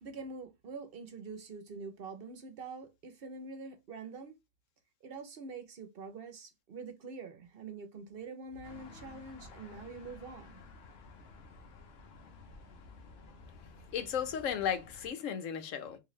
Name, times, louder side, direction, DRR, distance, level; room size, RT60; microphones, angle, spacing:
voice 1, 0.0-4.3 5.0-10.6, right 4 dB, 55° right, 0.8 m, -45 dB
sound 1, 8.6-15.1, left 3 dB, 60° left, 0.9 m, -53 dB
voice 2, 13.9-16.0, left 8 dB, 85° left, 1.1 m, -35 dB
3.8 x 2.6 x 3.1 m
omnidirectional pair, 1.3 m